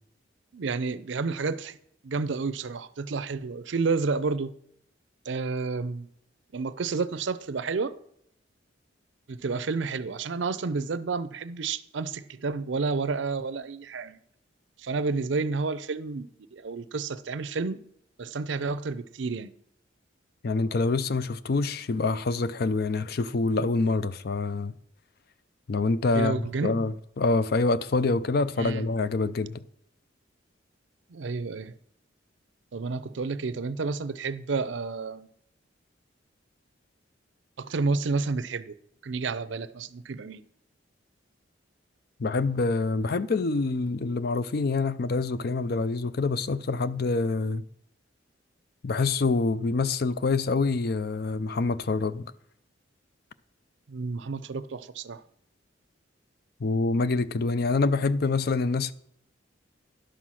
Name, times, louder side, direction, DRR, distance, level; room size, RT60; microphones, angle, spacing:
voice 1, 0.5-1.8 2.0-4.5 5.3-6.1 6.5-7.9 9.3-14.2 14.8-17.8 18.2-19.5 26.1-26.7 28.6-28.8 31.1-31.7 32.7-35.3 37.6-38.8 39.0-40.4 53.9-55.2, right 4 dB, 70° right, 0.5 m, -30 dB
voice 2, 20.4-24.7 25.7-29.6 42.2-47.6 48.8-52.3 56.6-58.9, left 3 dB, 55° left, 0.5 m, -26 dB
11.5 x 5.8 x 6.2 m
head